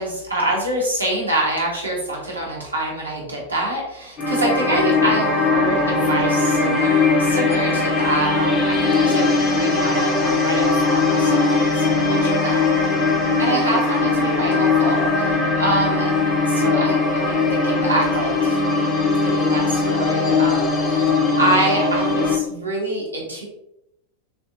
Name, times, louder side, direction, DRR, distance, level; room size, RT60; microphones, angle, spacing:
voice 1, 0.0-12.7 13.4-16.1 16.5-18.6 19.2-23.4, right 1 dB, 80° right, -3 dB, 1.4 m, -25 dB
sound 1, 4.2-22.4, left 3 dB, 30° left, 1.0 m, -19 dB
6.4 x 2.6 x 2.5 m, 0.82 s
figure-of-eight pair, 90°, 0 cm